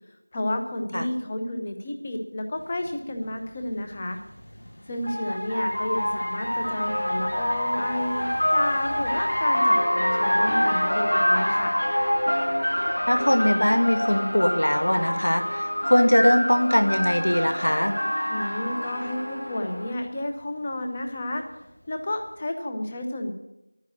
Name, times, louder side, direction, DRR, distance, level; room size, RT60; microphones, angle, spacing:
voice 1, 0.3-4.2 4.9-11.7 18.3-21.4 21.9-23.3, left 1 dB, 10° left, 5 dB, 0.8 m, -31 dB
sound 1, 2.9-3.0 4.4-20.0, equal, 90° left, 0.7 m, -26 dB
voice 2, 13.1-17.9, equal, 65° left, 7 dB, 1.9 m, -21 dB
12.0 x 9.6 x 9.0 m, 0.88 s
figure-of-eight pair, 180°, 0 cm